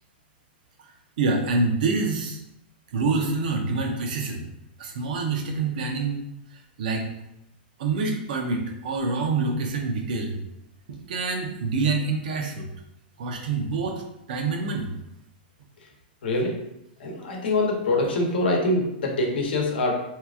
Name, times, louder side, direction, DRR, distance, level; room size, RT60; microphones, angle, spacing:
voice 1, 1.2-2.4 2.9-4.5 4.8-6.2 6.8-7.0 7.8-10.4 10.9-12.7 13.2-14.0 14.3-14.9, right 3 dB, 55° right, 3 dB, 0.6 m, -26 dB
voice 2, 16.2-16.6 17.0-19.9, left 2 dB, 80° left, 1 dB, 0.9 m, -24 dB
2.8 x 2.4 x 3.5 m, 0.82 s
supercardioid pair, 170°, 5 cm